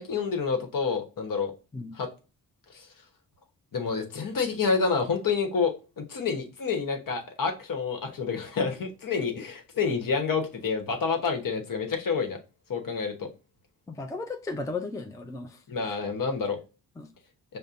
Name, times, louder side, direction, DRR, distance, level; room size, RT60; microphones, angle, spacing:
voice 1, 0.0-1.5 1.9-2.1 2.7-2.9 3.7-12.4 12.7-13.3 15.7-16.6, left 5 dB, 55° left, 1.1 m, -28 dB
voice 2, 13.9-16.0 17.0-17.1, left 3 dB, 10° left, 0.4 m, -36 dB
5.4 x 2.2 x 2.5 m
cardioid pair, 60°, 39 cm